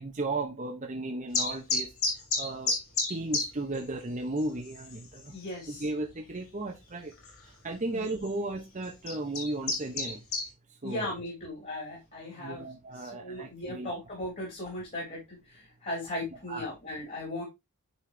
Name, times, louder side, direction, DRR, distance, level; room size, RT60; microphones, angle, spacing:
voice 1, 0.0-1.9 2.4-2.7 3.1-5.3 5.7-7.1 7.6-10.2 10.8-11.1 12.4-13.9 16.5-16.7, right 2 dB, 35° right, 0.8 m, -35 dB
sound 1, 1.3-3.5 3.7-3.8 4.4-4.5 4.7-5.2 5.7-5.8 7.2-7.3 8.1-8.3 8.8-10.5, left 3 dB, 65° left, 3.0 m, -29 dB
voice 2, 5.3-5.9 7.9-8.1 10.8-12.7 12.9-17.4, left 1 dB, 40° left, 3.9 m, -37 dB
9.4 x 4.3 x 3.2 m
head